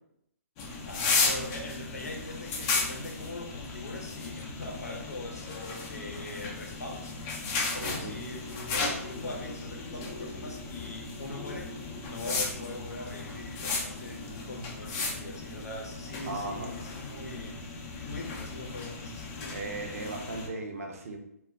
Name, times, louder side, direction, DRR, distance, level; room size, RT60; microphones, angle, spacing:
sound 1, 0.6-20.5, left 3 dB, 30° left, 0.5 m, -35 dB
voice 1, 0.9-5.5 5.9-7.1 7.7-11.7 12.0-17.6 18.0-19.6, left 2 dB, 80° left, 1 dB, 0.7 m, -41 dB
voice 2, 7.8-8.1 16.3-16.7 19.5-21.2, right 2 dB, 65° right, 2 dB, 0.6 m, -37 dB
2.3 x 2.1 x 3.5 m, 0.77 s
hypercardioid pair, 135°, 8 cm